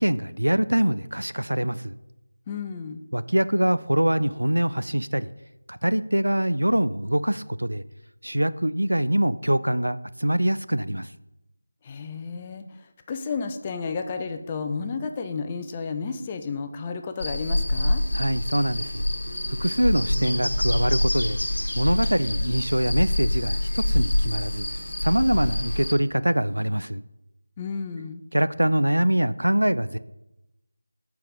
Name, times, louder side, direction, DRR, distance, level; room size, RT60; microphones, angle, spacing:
voice 1, 0.0-1.9 3.1-5.3 5.7-7.8 8.2-11.1 18.1-19.0 19.5-21.4 21.7-24.7 25.0-27.0 28.3-30.0, right 1 dB, 80° right, 14 dB, 0.4 m, -24 dB
voice 2, 2.5-3.0 11.8-18.0 27.6-28.2, left 5 dB, 20° left, 7 dB, 0.4 m, -32 dB
sound 1, 17.2-25.9, left 1 dB, 60° left, 1.2 m, -26 dB
7.7 x 4.7 x 5.3 m, 0.92 s
figure-of-eight pair, 165°, 0 cm